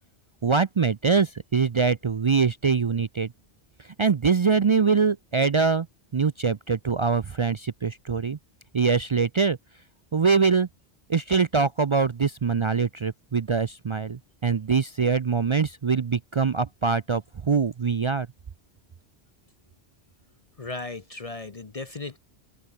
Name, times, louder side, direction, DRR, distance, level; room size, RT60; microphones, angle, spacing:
voice 1, 0.4-3.3 4.0-5.9 6.1-8.4 8.7-9.6 10.1-10.7 11.1-18.3, right 5 dB, 45° right, 0.4 m, -23 dB
voice 2, 20.6-22.2, left 3 dB, 35° left, 1.0 m, -36 dB
open air
omnidirectional pair, 1.1 m